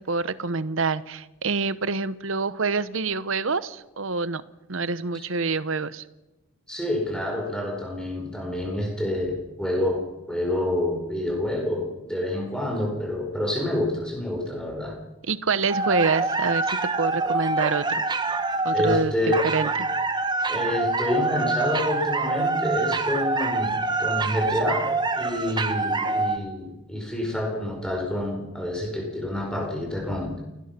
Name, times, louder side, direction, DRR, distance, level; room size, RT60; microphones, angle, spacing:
voice 1, 0.1-4.4 4.7-6.0 15.3-18.0 18.6-19.1 19.4-19.7, right 4 dB, 65° right, 15 dB, 0.9 m, -26 dB
voice 2, 6.7-15.0 18.7-19.4 20.5-24.9 25.2-30.4, left 1 dB, 5° left, 1 dB, 4.8 m, -28 dB
sound 1, 15.7-26.4, right 3 dB, 20° right, 1.1 m, -25 dB
29.0 x 17.5 x 5.9 m, 1.0 s
head